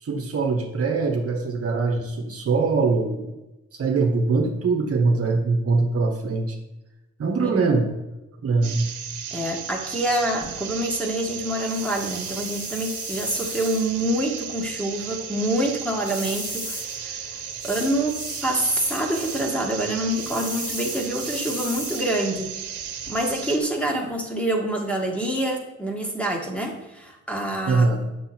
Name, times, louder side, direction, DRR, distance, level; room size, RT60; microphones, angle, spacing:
voice 1, 0.0-3.3 3.7-6.6 7.2-7.9 8.4-8.9 27.7-28.0, right 4 dB, 50° right, 2 dB, 1.4 m, -22 dB
sound 1, 8.6-23.6, right 8 dB, 75° right, 1.2 m, -35 dB
voice 2, 9.3-17.2 17.6-22.5 23.1-28.1, right 1 dB, 5° left, 0 dB, 1.9 m, -26 dB
sound 2, 10.4-23.4, left 1 dB, 25° left, 2.2 m, -38 dB
7.9 x 6.8 x 4.5 m, 1.0 s
cardioid pair, 90°, 30 cm